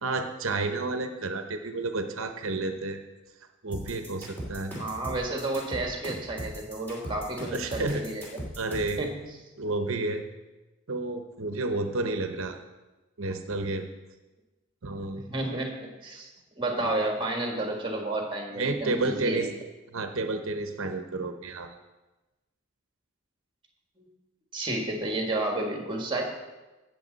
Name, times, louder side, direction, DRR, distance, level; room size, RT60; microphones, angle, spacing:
voice 1, 0.0-3.0 3.6-4.7 7.5-8.0 8.6-9.1 9.6-10.2 10.9-12.6 13.2-13.9 14.8-15.2 16.8-17.1 18.6-19.5 19.9-21.7, right 3 dB, 65° right, 6 dB, 0.9 m, -31 dB
sound 1, 3.7-9.0, equal, 10° left, 2.7 m, -38 dB
voice 2, 4.8-8.3 9.0-9.4 15.2-15.7 16.0-16.3 16.6-19.5 24.0-24.1 24.5-26.2, right 2 dB, 20° right, 2 dB, 1.7 m, -31 dB
18.0 x 6.9 x 4.0 m, 1.1 s
head